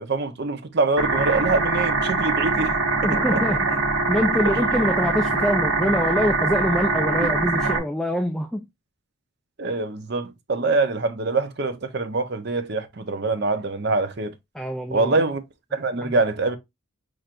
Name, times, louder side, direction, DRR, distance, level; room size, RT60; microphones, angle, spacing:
voice 1, 0.0-2.7 3.1-3.5 9.6-14.3 14.9-15.4 15.7-16.6, right 3 dB, 50° right, 0.7 m, -24 dB
sound 1, 1.0-7.8, right 3 dB, 75° right, 1.4 m, -23 dB
voice 2, 3.0-3.8 4.1-8.6 14.5-15.2 16.0-16.2, equal, 5° left, 0.3 m, -24 dB
5.9 x 3.2 x 2.5 m
head